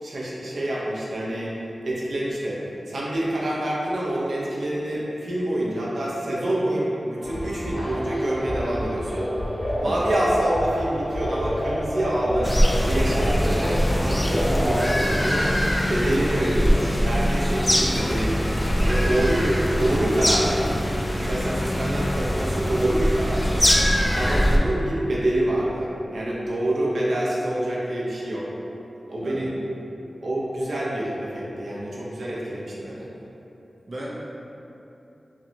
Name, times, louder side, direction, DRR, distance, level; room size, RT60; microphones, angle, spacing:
voice 1, 0.0-1.5 1.8-2.6 2.9-9.2 9.8-12.5 12.8-15.5 15.9-18.4 18.8-20.6 21.2-23.7 24.1-28.4 29.1-29.7 30.2-33.1, right 1 dB, 85° right, -6 dB, 0.7 m, -26 dB
sound 1, 7.2-14.9, equal, 40° left, 1.0 m, -28 dB
sound 2, 12.4-24.6, equal, 15° left, 0.3 m, -22 dB
voice 2, 33.9-34.3, right 1 dB, 45° right, -6 dB, 0.5 m, -36 dB
5.7 x 2.1 x 2.7 m, 3.0 s
wide cardioid pair, 100°, 0 cm